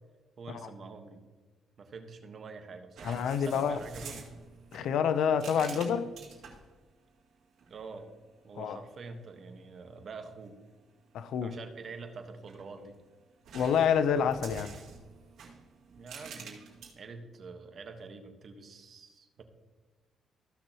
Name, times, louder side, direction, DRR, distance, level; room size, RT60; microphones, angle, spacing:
voice 1, 0.4-1.2 1.8-4.3 5.6-5.9 7.7-8.1 8.4-10.6 11.4-13.0 15.9-16.6 16.9-19.4, right 4 dB, 50° right, 1.3 m, -46 dB
voice 2, 3.0-3.8 4.7-6.0 8.6-8.8 11.1-11.5 13.5-14.7, left 7 dB, 75° left, 0.6 m, -28 dB
sound 1, 3.0-6.7 7.6-8.0 12.2-13.0 13.5-16.9, right 5 dB, 70° right, 2.2 m, -48 dB
15.0 x 6.2 x 3.0 m
cardioid pair, 90°, 0 cm